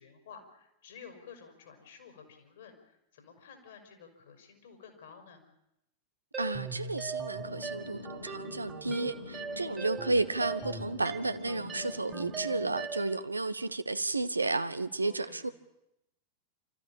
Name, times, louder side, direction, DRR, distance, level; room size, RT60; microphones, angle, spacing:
voice 1, 0.0-5.4 9.6-10.0 15.0-15.5, left 6 dB, 60° left, 4.9 m, -52 dB
sound 1, 6.3-13.2, right 5 dB, 20° right, 2.0 m, -40 dB
voice 2, 6.4-15.5, right 3 dB, 80° right, 0.9 m, -32 dB
sound 2, 7.3-12.8, left 3 dB, 80° left, 1.8 m, -45 dB
27.5 x 14.0 x 8.7 m
figure-of-eight pair, 90°, 0 cm